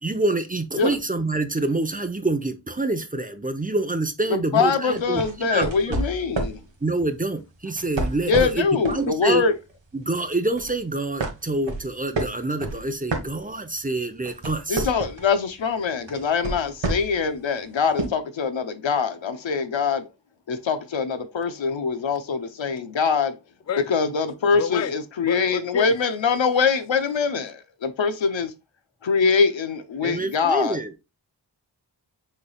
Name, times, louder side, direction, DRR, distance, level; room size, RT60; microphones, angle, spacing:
voice 1, 0.0-6.0 6.8-9.4 9.9-14.9 30.0-30.9, right 2 dB, 20° right, 0.6 m, -26 dB
voice 2, 4.3-6.6 8.3-9.5 14.7-20.1 20.5-23.4 23.9-28.5 29.0-30.8, left 5 dB, 90° left, 0.7 m, -23 dB
sound 1, 4.9-6.6 7.7-9.1 9.5-9.7 10.2-10.8 11.2-13.8 14.1-15.3 16.1-17.2 18.0-18.1, right 3 dB, 90° right, 1.3 m, -29 dB
voice 3, 24.6-24.9 25.2-26.0, left 7 dB, 40° left, 0.4 m, -29 dB
6.5 x 3.3 x 2.3 m
wide cardioid pair, 70°, 44 cm